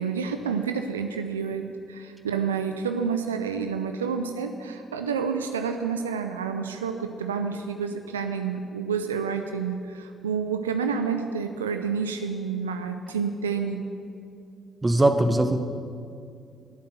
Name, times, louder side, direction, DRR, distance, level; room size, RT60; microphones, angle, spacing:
voice 1, 0.0-13.8, right 6 dB, 85° right, 7 dB, 0.4 m, -29 dB
voice 2, 14.8-15.6, right 1 dB, 25° right, 8 dB, 1.1 m, -20 dB
12.0 x 8.6 x 7.8 m, 2.4 s
hypercardioid pair, 40°, 0 cm